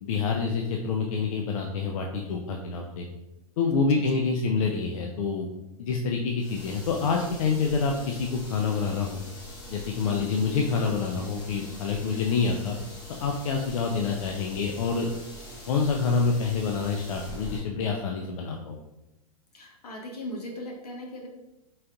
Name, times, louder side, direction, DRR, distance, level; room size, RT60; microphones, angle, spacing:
voice 1, 0.0-3.1 3.6-5.5 5.8-9.2 9.7-12.8 13.2-15.1 15.7-18.8, left 5 dB, 60° left, 1 dB, 0.5 m, -27 dB
sound 1, 6.4-17.6, left 1 dB, 20° left, 1.3 m, -43 dB
voice 2, 10.0-10.3 12.1-12.2 19.5-21.3, left 1 dB, 80° left, -1 dB, 1.2 m, -39 dB
4.1 x 3.8 x 2.4 m, 0.96 s
hypercardioid pair, 115°, 19 cm